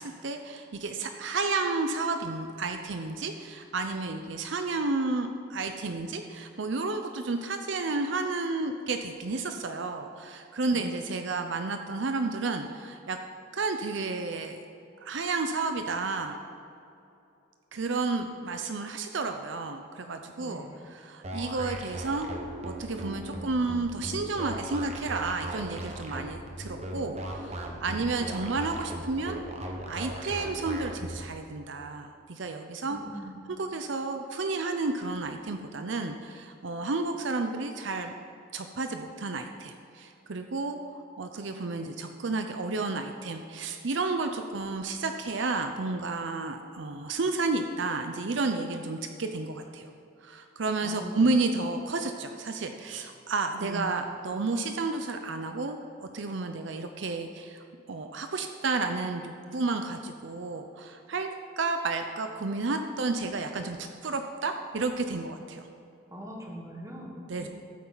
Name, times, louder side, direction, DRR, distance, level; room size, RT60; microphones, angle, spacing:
voice 1, 0.0-13.2 13.5-14.6 15.0-16.4 17.7-20.6 20.9-22.3 22.6-29.4 29.9-33.0 33.6-38.1 38.5-49.9 50.2-65.7 67.3-67.5, right 3 dB, 65° right, 6 dB, 0.6 m, -31 dB
voice 2, 20.4-20.8 27.9-28.1 32.9-33.4 50.8-51.3 53.5-53.9 66.1-67.5, equal, 15° right, 0 dB, 1.4 m, -41 dB
sound 1, 21.2-31.2, right 1 dB, 30° right, 1.0 m, -38 dB
14.0 x 8.5 x 4.0 m, 2.7 s
head